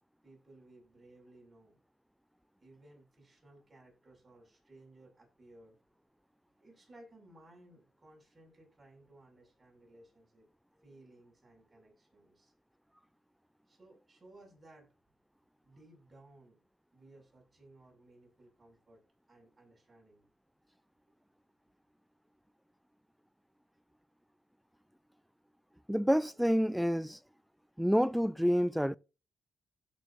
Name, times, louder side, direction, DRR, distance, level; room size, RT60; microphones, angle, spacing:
voice 1, 0.2-1.8 2.6-5.8 6.6-12.5 13.7-14.9 15.6-16.6 16.9-19.0 19.3-20.3 21.0-21.1, right 1 dB, 25° right, 6.4 m, -59 dB
voice 2, 25.9-27.2 27.8-29.0, equal, ahead, 0.4 m, -28 dB
16.0 x 6.5 x 2.6 m
cardioid pair, 80°, 0 cm